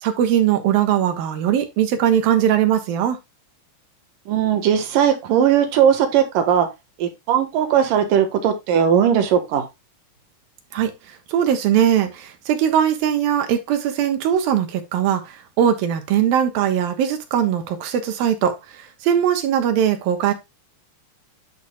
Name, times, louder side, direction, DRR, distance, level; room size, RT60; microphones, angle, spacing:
voice 1, 0.0-3.2 10.7-10.9 11.3-20.3, right 9 dB, 90° right, 3.1 m, -20 dB
voice 2, 4.3-6.7 7.0-9.7, right 9 dB, 70° right, 2.9 m, -18 dB
10.5 x 6.1 x 2.2 m
omnidirectional pair, 4.0 m